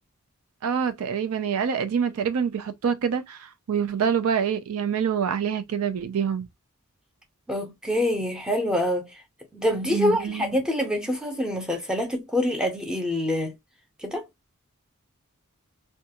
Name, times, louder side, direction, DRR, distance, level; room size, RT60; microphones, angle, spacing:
voice 1, 0.6-6.5 9.9-10.6, right 7 dB, 70° right, 0.4 m, -26 dB
voice 2, 7.5-9.1 9.5-13.5 14.0-14.2, left 1 dB, 5° right, 0.6 m, -26 dB
2.4 x 2.2 x 2.8 m
head